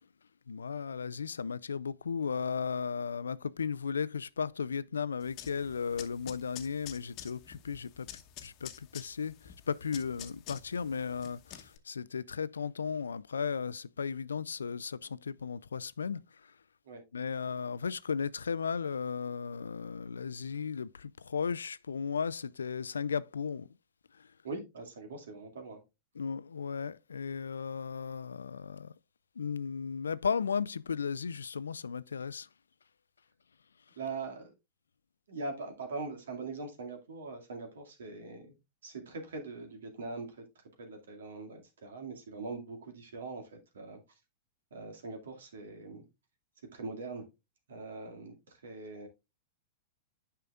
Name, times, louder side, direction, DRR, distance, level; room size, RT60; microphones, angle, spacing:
voice 1, 0.5-8.1 8.4-16.2 17.1-23.7 24.2-24.3 26.1-28.9 29.4-32.5, left 6 dB, 85° left, 0.4 m, -35 dB
sound 1, 5.2-11.8, left 11 dB, 45° left, 1.0 m, -49 dB
voice 2, 24.4-25.8 34.0-34.5 35.3-38.6 38.8-40.4 40.8-44.0 44.7-46.0 46.7-47.3 47.7-49.1, right 3 dB, 75° right, 2.2 m, -42 dB
9.3 x 5.6 x 2.4 m
hypercardioid pair, 100°, 0 cm